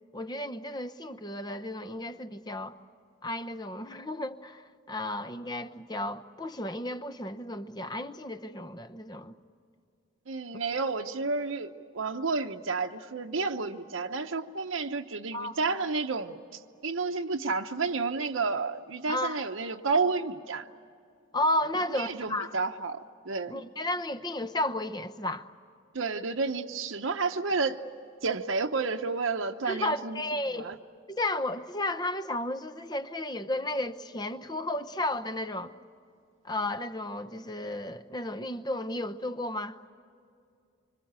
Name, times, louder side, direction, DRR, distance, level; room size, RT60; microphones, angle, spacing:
voice 1, 0.1-2.8 3.2-9.4 15.3-15.6 19.1-19.4 21.3-22.6 23.5-25.5 29.7-30.7 31.1-35.7 36.4-39.8, left 1 dB, 20° left, 0.8 m, -33 dB
voice 2, 10.3-20.7 21.9-23.0 23.3-23.6 25.9-27.8 28.2-30.2 30.5-30.7, right 4 dB, 80° right, 0.9 m, -31 dB
26.0 x 25.5 x 8.8 m
head